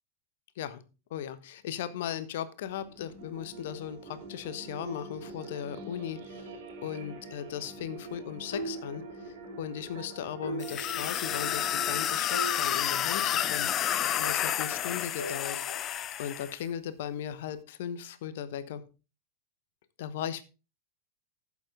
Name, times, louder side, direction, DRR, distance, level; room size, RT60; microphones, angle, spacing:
voice 1, 1.1-6.5 6.8-13.7 14.1-15.7 16.2-18.8 20.0-20.4, left 9 dB, 55° left, 14 dB, 1.0 m, -37 dB
sound 1, 2.6-12.2, right 3 dB, 55° right, 2.8 m, -45 dB
sound 2, 8.5-9.7 10.0-10.1 10.4-11.9 12.3-13.8 14.2-16.1, right 1 dB, 75° left, 2.8 m, -41 dB
sound 3, 10.6-16.6, left 11 dB, 30° left, 0.6 m, -30 dB
11.5 x 8.4 x 3.5 m, 0.31 s
figure-of-eight pair, 90°, 0 cm